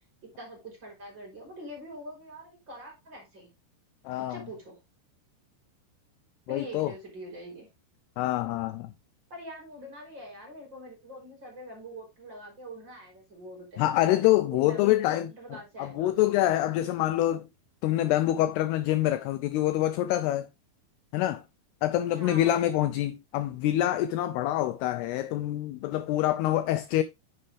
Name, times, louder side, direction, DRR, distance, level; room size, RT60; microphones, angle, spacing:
voice 1, 0.2-3.5 4.2-4.8 6.5-7.7 9.3-13.9 14.4-16.2 22.1-22.5, equal, 25° right, 4.1 m, -44 dB
voice 2, 4.1-4.4 6.5-6.9 8.2-8.9 13.8-15.3 15.8-17.5 17.8-20.5 21.1-21.4 21.8-27.0, left 14 dB, 85° left, 2.3 m, -26 dB
9.8 x 6.5 x 3.3 m
omnidirectional pair, 5.2 m